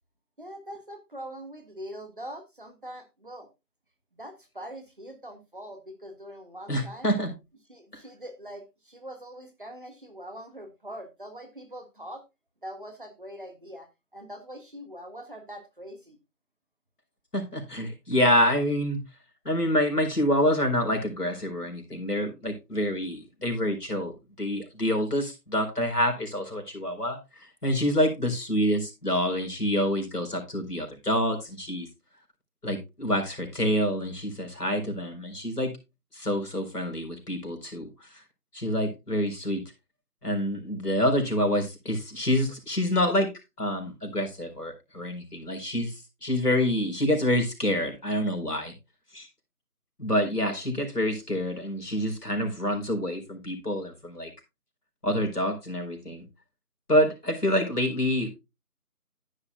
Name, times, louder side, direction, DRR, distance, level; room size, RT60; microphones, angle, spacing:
voice 1, 0.4-3.5 4.1-7.1 7.7-12.2 12.6-13.9 14.1-16.2, equal, 35° right, 6 dB, 1.7 m, -42 dB
voice 2, 6.7-7.3 17.3-19.0 19.4-31.9 32.6-35.7 36.1-38.2 38.5-39.6 40.2-43.3 43.6-48.7 49.1-49.3 50.0-54.3 55.0-56.2 56.9-58.3, equal, 80° left, 4 dB, 4.4 m, -27 dB
11.5 x 10.0 x 2.3 m, 0.24 s
figure-of-eight pair, 165°, 46 cm